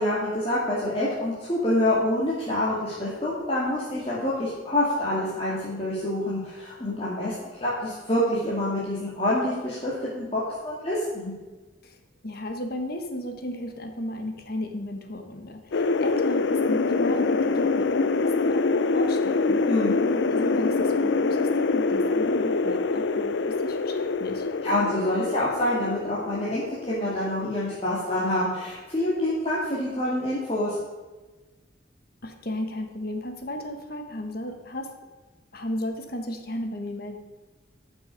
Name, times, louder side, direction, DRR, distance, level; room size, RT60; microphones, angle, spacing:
voice 1, 0.0-7.3 7.6-11.3 19.7-20.0 24.6-30.8, left 1 dB, 30° left, -8 dB, 2.0 m, -26 dB
voice 2, 12.2-19.6 20.0-24.5 32.2-34.9 35.5-37.2, left 1 dB, 55° left, 5 dB, 1.3 m, -34 dB
sound 1, 15.7-28.1, left 3 dB, 70° left, 0.5 m, -25 dB
12.5 x 6.2 x 5.2 m, 1.3 s
head